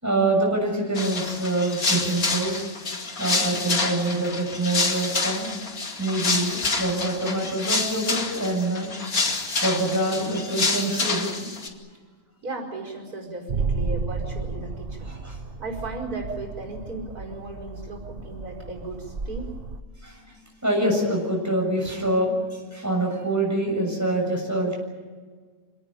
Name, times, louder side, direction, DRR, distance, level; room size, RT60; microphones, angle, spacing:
voice 1, 0.0-2.7 3.2-5.5 6.0-8.9 9.6-11.5 15.1-15.4 20.0-24.8, right 1 dB, 10° right, 0 dB, 7.0 m, -25 dB
sound 1, 0.9-11.7, left 3 dB, 70° left, 2.9 m, -27 dB
voice 2, 12.4-15.1 15.6-19.6, right 2 dB, 85° right, 0 dB, 5.5 m, -36 dB
sound 2, 13.5-19.8, right 4 dB, 40° right, 1.2 m, -32 dB
26.5 x 18.0 x 9.0 m, 1.5 s
omnidirectional pair, 1.6 m